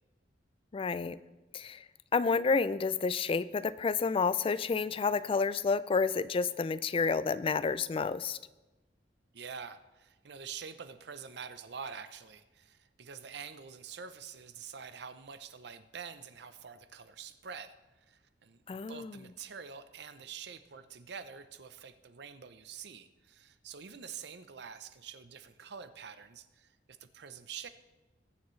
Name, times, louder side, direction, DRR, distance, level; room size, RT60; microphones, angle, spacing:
voice 1, 0.7-1.2 1.5-1.8 2.1-8.4 18.7-19.2, left 4 dB, 30° left, 16 dB, 0.3 m, -30 dB
voice 2, 9.3-17.7 18.1-27.7, right 6 dB, 65° right, 11 dB, 0.7 m, -46 dB
21.0 x 7.0 x 3.2 m, 1.1 s
head